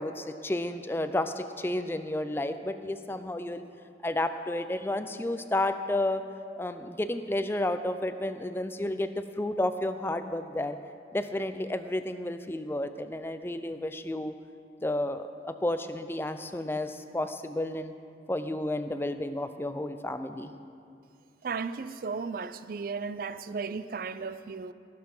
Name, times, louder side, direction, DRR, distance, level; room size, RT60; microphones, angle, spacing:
voice 1, 0.0-3.6 4.0-6.2 6.6-10.8 11.1-14.4 14.8-17.9 18.3-20.5, left 1 dB, 15° left, 0.4 m, -31 dB
voice 2, 21.4-24.7, right 5 dB, 50° right, 0.4 m, -35 dB
18.0 x 6.7 x 5.5 m
head